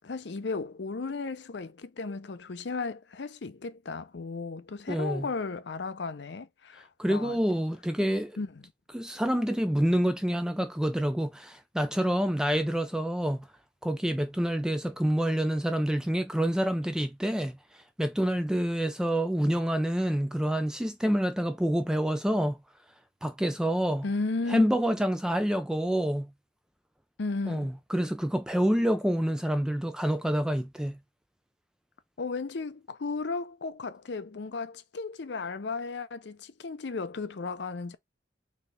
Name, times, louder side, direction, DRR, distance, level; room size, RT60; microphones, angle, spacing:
voice 1, 0.0-7.4 8.4-8.7 24.0-24.7 27.2-27.7 32.2-38.0, left 3 dB, 60° left, 0.6 m, -35 dB
voice 2, 4.9-5.3 7.0-8.4 8.9-13.5 13.8-22.6 23.2-24.0 24.5-26.3 27.5-31.0, equal, 5° right, 0.3 m, -27 dB
4.3 x 3.3 x 3.3 m
head